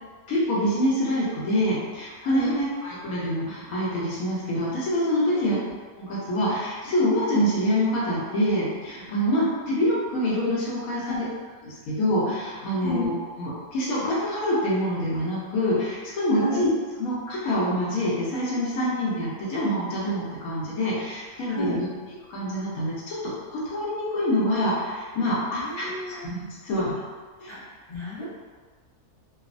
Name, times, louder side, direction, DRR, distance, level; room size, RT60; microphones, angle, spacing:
voice 1, 0.3-5.6 5.9-11.3 11.6-16.7 17.0-21.9 22.3-23.2 23.5-26.9 27.4-27.5 28.2-28.3, equal, 80° left, -7 dB, 1.2 m, -26 dB
voice 2, 2.2-2.6 5.3-5.6 10.9-11.3 12.8-13.1 16.4-16.6 21.5-21.8 25.5-26.3 27.5-28.2, left 1 dB, 30° left, -11 dB, 0.6 m, -32 dB
3.0 x 2.0 x 2.4 m, 1.5 s
omnidirectional pair, 1.5 m